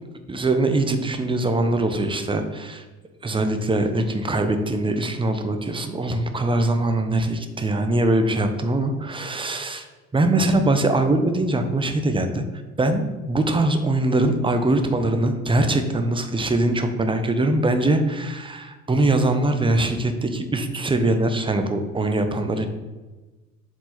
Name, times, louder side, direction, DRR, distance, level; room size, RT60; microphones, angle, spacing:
voice 1, 0.3-2.8 3.2-9.9 10.1-12.4 12.8-22.7, right 2 dB, 10° right, 7 dB, 0.8 m, -22 dB
7.5 x 4.6 x 4.2 m, 1.2 s
figure-of-eight pair, 60°, 43 cm